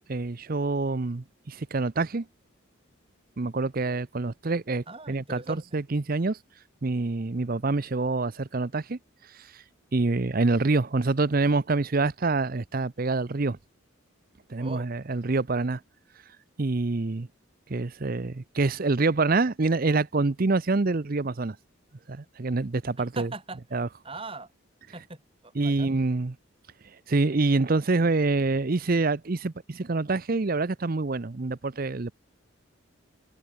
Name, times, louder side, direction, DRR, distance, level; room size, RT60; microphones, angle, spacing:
voice 1, 0.1-2.3 3.4-6.4 6.8-9.0 9.3-9.6 9.9-13.6 14.5-15.8 16.6-17.3 17.7-21.6 22.1-23.3 23.7-23.9 25.5-26.4 27.1-32.1, right 3 dB, 45° right, 0.6 m, -26 dB
voice 2, 4.9-5.6 14.6-14.9 23.1-24.5 24.9-25.2 25.4-26.0, right 2 dB, 25° right, 6.9 m, -40 dB
head